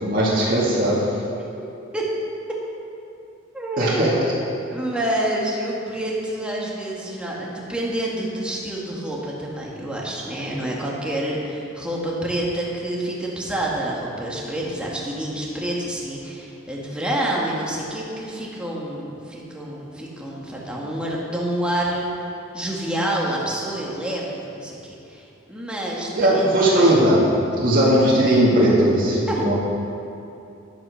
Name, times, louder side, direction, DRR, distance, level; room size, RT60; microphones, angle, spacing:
voice 1, 0.0-1.0 3.8-4.1 26.1-27.2 27.6-29.5, right 1 dB, 45° right, -7 dB, 2.1 m, -18 dB
voice 2, 3.5-4.3 4.7-22.1 22.5-25.2 25.5-27.0 29.3-29.5, right 1 dB, 5° right, -4 dB, 1.8 m, -28 dB
10.5 x 9.2 x 6.5 m, 2.7 s
head